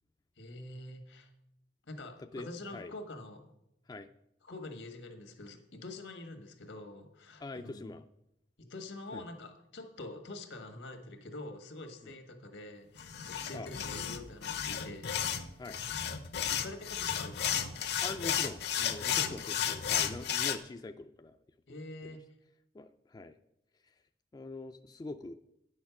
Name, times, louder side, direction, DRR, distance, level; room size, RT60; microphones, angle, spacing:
voice 1, 0.4-1.3 1.9-3.4 4.4-7.9 8.6-15.6 16.3-17.8 19.1-19.5 21.7-22.2, left 2 dB, 90° left, 6 dB, 1.6 m, -46 dB
voice 2, 7.4-8.0 9.1-9.2 12.0-12.1 13.5-13.7 15.6-15.8 18.0-21.4 22.0-22.2 22.7-23.4 24.3-25.3, left 2 dB, 20° left, 8 dB, 0.3 m, -43 dB
sound 1, 13.0-20.6, left 9 dB, 60° left, 0.6 m, -33 dB
9.9 x 6.4 x 5.9 m, 0.82 s
head